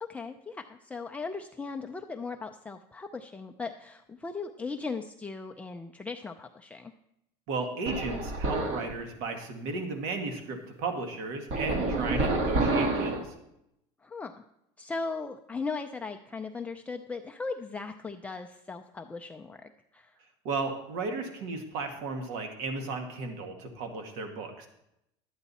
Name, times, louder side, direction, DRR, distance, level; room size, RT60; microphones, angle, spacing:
voice 1, 0.0-6.9 14.0-14.3 14.8-20.1, left 4 dB, 10° left, 4 dB, 0.5 m, -38 dB
voice 2, 7.5-13.3 20.4-24.7, right 3 dB, 70° right, 5 dB, 1.8 m, -34 dB
sound 1, 7.9-8.9 11.5-13.3, right 2 dB, 50° right, 1.9 m, -28 dB
12.0 x 9.0 x 4.2 m, 0.81 s
supercardioid pair, 130°, 14 cm